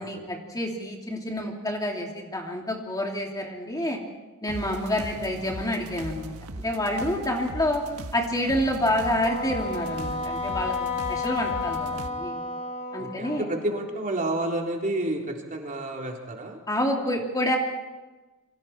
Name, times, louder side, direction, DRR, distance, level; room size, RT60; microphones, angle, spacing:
voice 1, 0.0-4.0 4.4-6.3 6.6-7.8 8.1-12.4 12.9-13.5 16.7-17.6, left 1 dB, 15° left, 1 dB, 2.8 m, -28 dB
sound 1, 4.5-12.1, right 1 dB, 80° right, 1.5 m, -39 dB
Wind instrument woodwind instrument, 9.2-13.7, left 4 dB, 30° left, 2.4 m, -32 dB
voice 2, 13.0-16.6, right 1 dB, 40° right, 0 dB, 3.7 m, -30 dB
29.5 x 24.5 x 4.4 m, 1.2 s
head